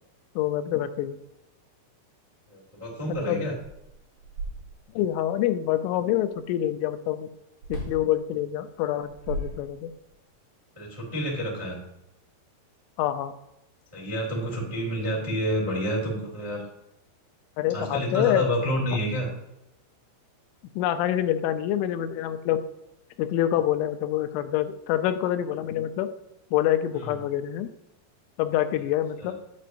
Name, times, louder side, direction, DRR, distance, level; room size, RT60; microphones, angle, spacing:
voice 1, 0.4-1.2 3.1-3.5 5.0-7.3 7.7-9.9 13.0-13.3 17.6-18.5 20.8-22.6 23.2-26.1 26.5-27.7 28.4-29.3, left 12 dB, 90° left, 10 dB, 3.0 m, -26 dB
voice 2, 2.5-3.5 10.7-11.8 13.9-16.6 17.7-19.3 26.9-27.1 29.2-29.3, equal, 25° right, -4 dB, 0.6 m, -29 dB
sound 1, 3.6-5.1 7.6-8.1 8.9-10.1, right 1 dB, 60° right, 4.3 m, -36 dB
9.2 x 9.1 x 2.6 m, 0.87 s
omnidirectional pair, 5.3 m